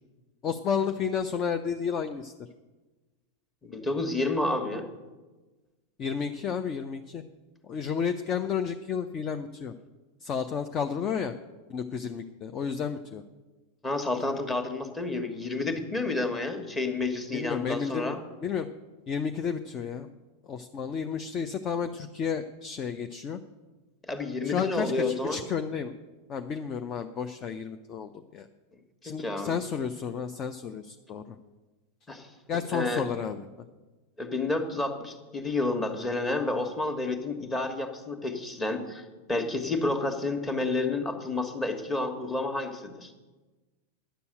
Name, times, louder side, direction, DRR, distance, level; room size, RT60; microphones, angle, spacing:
voice 1, 0.4-2.3 6.0-7.2 7.6-9.7 10.2-11.3 11.7-13.2 17.3-18.7 19.1-20.1 20.5-23.4 24.4-25.9 26.3-28.5 29.0-31.4 32.5-33.4, left 6 dB, 30° left, 8 dB, 0.5 m, -32 dB
voice 2, 3.6-4.9 13.8-18.2 24.1-25.4 29.0-29.6 32.1-32.3 32.7-33.0 34.2-43.1, left 2 dB, 15° left, 5 dB, 1.4 m, -30 dB
10.0 x 6.9 x 8.9 m, 1.2 s
figure-of-eight pair, 90°, 0 cm